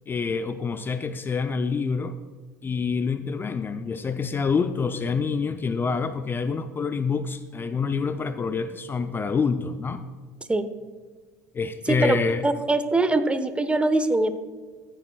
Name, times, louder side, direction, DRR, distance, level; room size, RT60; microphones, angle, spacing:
voice 1, 0.1-2.1 2.6-10.0 11.5-12.5, left 5 dB, 25° left, 10 dB, 0.5 m, -27 dB
voice 2, 12.4-14.4, right 2 dB, 15° right, 11 dB, 0.8 m, -22 dB
14.5 x 9.0 x 2.3 m, 1.4 s
figure-of-eight pair, 65°, 9 cm